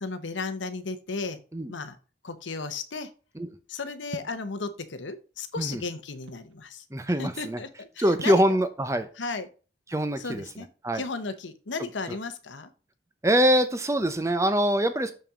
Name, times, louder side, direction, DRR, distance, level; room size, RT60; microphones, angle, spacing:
voice 1, 0.0-1.4 1.7-2.0 2.2-3.1 3.7-6.8 7.2-8.4 9.2-9.5 10.2-10.7 10.9-12.7, left 4 dB, 90° left, 11 dB, 0.9 m, -34 dB
sound 1, 4.1-4.5 5.3-6.5 8.2-8.5, right 2 dB, 90° right, 0.9 m, -43 dB
voice 2, 6.9-7.6 8.0-9.1 9.9-10.4 10.8-11.0 12.1-12.2 13.2-15.1, equal, 15° right, 10 dB, 0.7 m, -24 dB
6.9 x 5.6 x 3.7 m, 0.36 s
head